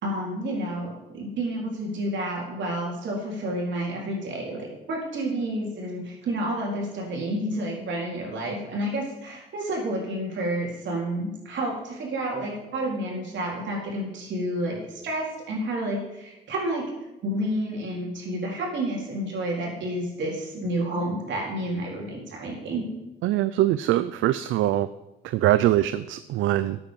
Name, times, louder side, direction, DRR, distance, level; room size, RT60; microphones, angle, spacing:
voice 1, 0.0-16.9 17.2-22.9, right 1 dB, 65° right, -2 dB, 4.1 m, -30 dB
voice 2, 23.2-24.9 25.2-26.8, right 14 dB, 85° right, 14 dB, 0.4 m, -23 dB
13.0 x 8.7 x 5.3 m, 1.0 s
cardioid pair, 90°, 20 cm